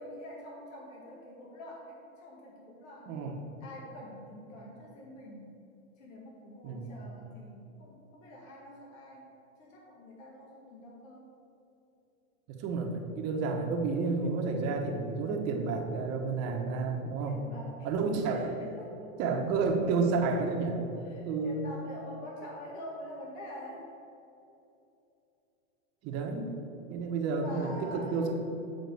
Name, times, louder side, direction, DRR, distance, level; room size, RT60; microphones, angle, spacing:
voice 1, 0.0-3.3 3.6-5.6 6.0-9.3 9.6-11.3 17.2-19.2 21.0-23.9 27.3-28.3, equal, 70° left, -2 dB, 1.9 m, -46 dB
voice 2, 3.1-3.4 6.6-6.9 12.5-17.4 17.8-18.5 19.2-20.8 21.2-21.6 26.0-26.6 26.9-28.3, right 4 dB, 40° right, 2 dB, 1.2 m, -30 dB
8.0 x 4.3 x 6.8 m, 2.8 s
hypercardioid pair, 125°, 40 cm